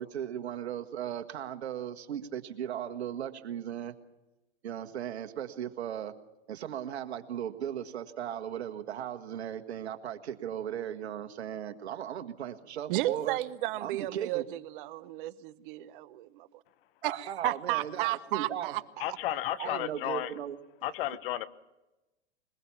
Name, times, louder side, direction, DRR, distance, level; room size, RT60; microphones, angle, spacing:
voice 1, 0.0-3.9 4.6-6.1 6.5-13.4 13.8-14.4 17.0-18.7 19.6-20.6, right 10 dB, 70° right, 9 dB, 1.7 m, -37 dB
voice 2, 12.9-16.5 17.0-18.8, right 17 dB, 50° right, 17 dB, 1.0 m, -33 dB
voice 3, 19.0-20.3 20.8-21.5, left 13 dB, 55° left, 14 dB, 1.2 m, -33 dB
22.0 x 21.5 x 5.8 m, 1.0 s
hypercardioid pair, 110°, 34 cm